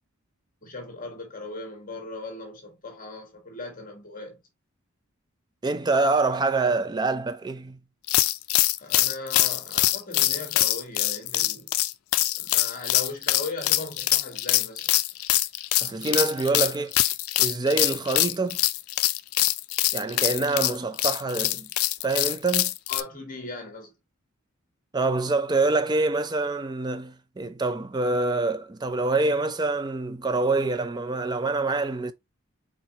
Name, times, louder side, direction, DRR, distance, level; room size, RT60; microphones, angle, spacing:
voice 1, 0.6-4.4 8.8-11.7 12.4-15.0 22.9-23.9, left 3 dB, 40° left, 1.4 m, -38 dB
voice 2, 5.6-7.8 15.8-17.0 17.4-18.6 19.9-21.7 22.0-22.7 24.9-32.1, right 3 dB, 20° right, 0.4 m, -26 dB
sound 1, 8.1-23.0, left 16 dB, 85° left, 0.4 m, -24 dB
4.3 x 3.8 x 2.8 m
head